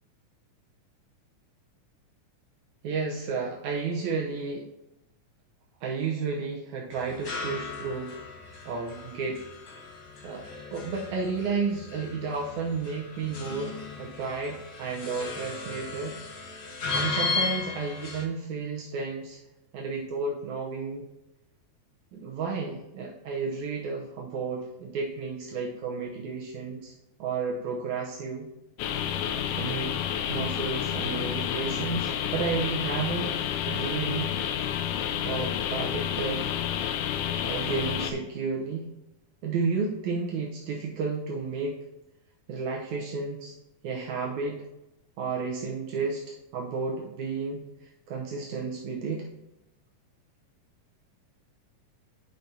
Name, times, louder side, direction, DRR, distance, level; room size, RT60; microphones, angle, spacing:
voice 1, 2.8-4.7 5.8-8.1 8.7-9.4 10.2-16.2 16.9-19.4 19.7-21.1 22.1-26.9 27.2-28.5 29.6-30.0 30.3-33.4 33.7-34.3 35.3-36.5 37.4-38.9 39.4-41.8 42.5-43.5 43.8-44.6 45.2-49.3, right 4 dB, 75° right, -2 dB, 2.0 m, -32 dB
sound 1, 6.9-18.2, left 4 dB, 55° left, 1.3 m, -36 dB
sound 2, 28.8-38.1, left 9 dB, 80° left, 2.0 m, -30 dB
10.0 x 5.7 x 2.7 m, 0.91 s
omnidirectional pair, 3.6 m